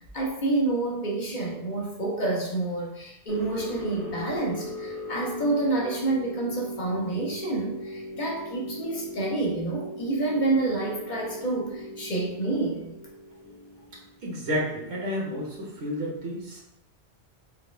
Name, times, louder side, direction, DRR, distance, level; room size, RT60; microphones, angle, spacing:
voice 1, 0.1-13.0, right 2 dB, 50° left, -3 dB, 0.7 m, -28 dB
sound 1, 3.3-14.1, left 1 dB, 30° right, 1.0 m, -39 dB
voice 2, 14.2-16.6, equal, 85° right, -4 dB, 1.3 m, -31 dB
4.5 x 2.2 x 2.2 m, 0.88 s
omnidirectional pair, 1.1 m